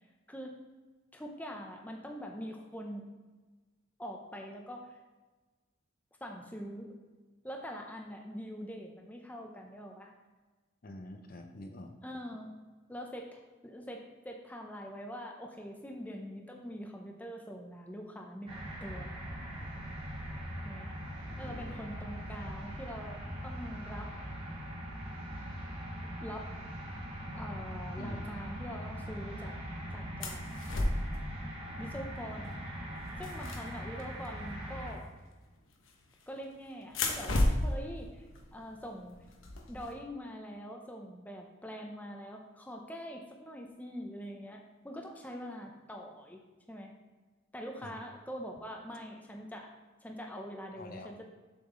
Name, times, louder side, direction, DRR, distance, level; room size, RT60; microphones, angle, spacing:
voice 1, 1.1-3.0 4.0-5.0 6.2-6.9 7.4-10.1 12.0-12.5 12.9-19.2 19.6-19.7 20.6-20.9 21.4-24.1 26.0-26.5 27.3-29.5 29.9-30.4 31.8-32.5 33.2-35.1 36.3-38.3 38.5-39.2 39.7-46.4 46.7-46.9 47.5-49.7 50.0-51.2, equal, 10° left, 1 dB, 0.7 m, -44 dB
voice 2, 10.8-11.9 21.3-21.8 28.0-28.3 47.8-47.9 50.7-51.1, left 1 dB, 45° left, 4 dB, 0.7 m, -46 dB
sound 1, 18.5-34.9, equal, 25° right, 1.6 m, -41 dB
sound 2, 30.2-31.2 32.3-32.5 32.8-34.3 35.7-36.3 36.8-39.9, left 1 dB, 70° left, 1.0 m, -33 dB
7.0 x 5.8 x 3.9 m, 1.3 s
head